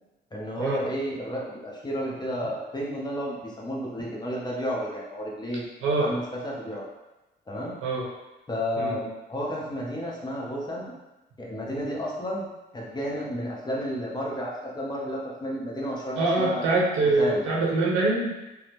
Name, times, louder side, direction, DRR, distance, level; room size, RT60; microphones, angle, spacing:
voice 1, 0.3-5.6 6.0-6.9 7.5-7.7 8.5-10.9 11.4-12.5 12.7-16.6 17.2-17.4, equal, 20° left, -3 dB, 0.8 m, -32 dB
voice 2, 16.2-18.3, right 2 dB, 85° right, -4 dB, 0.9 m, -24 dB
3.4 x 2.0 x 3.0 m, 1.0 s
cardioid pair, 90°, 20 cm